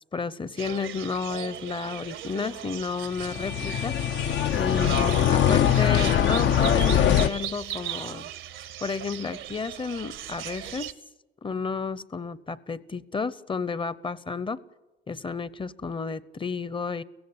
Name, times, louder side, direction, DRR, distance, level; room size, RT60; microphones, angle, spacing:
voice 1, 0.1-3.9 4.5-8.3 8.8-10.9 11.4-14.6 15.1-17.0, left 5 dB, 25° left, 18 dB, 0.8 m, -32 dB
sound 1, 0.6-10.9, right 11 dB, 80° right, 0.9 m, -38 dB
sound 2, 3.1-7.3, left 9 dB, 70° left, 0.7 m, -22 dB
17.0 x 16.0 x 9.6 m, 1.1 s
cardioid pair, 90°, 20 cm